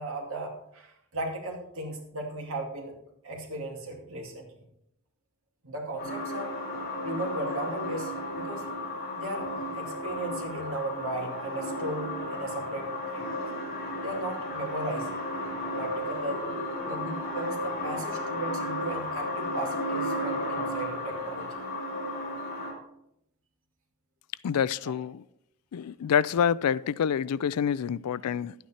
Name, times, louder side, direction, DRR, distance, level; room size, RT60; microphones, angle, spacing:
voice 1, 0.0-3.0 3.2-4.5 5.6-6.5 7.0-8.6 9.1-13.4 14.0-15.2 15.7-16.5 16.8-21.5, right 1 dB, 65° right, 2.5 m, -36 dB
sound 1, 6.0-22.7, left 1 dB, 45° left, 3.0 m, -34 dB
voice 2, 24.4-25.2 25.7-28.5, left 8 dB, 85° left, 0.4 m, -27 dB
11.5 x 9.2 x 4.3 m
head